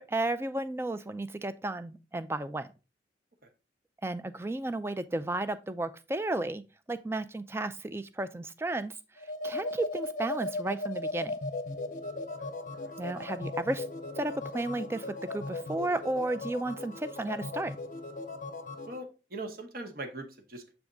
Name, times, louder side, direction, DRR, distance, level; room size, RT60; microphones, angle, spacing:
voice 1, 0.0-2.7 4.0-6.6 6.9-9.0 9.4-11.3 13.0-13.8 14.2-17.8, right 2 dB, 15° right, 12 dB, 0.3 m, -33 dB
sound 1, 9.2-19.0, left 2 dB, 45° left, 0.6 m, -37 dB
voice 2, 12.4-12.9 18.9-20.7, right 2 dB, 50° right, 5 dB, 0.9 m, -42 dB
7.1 x 3.5 x 3.8 m, 0.31 s
head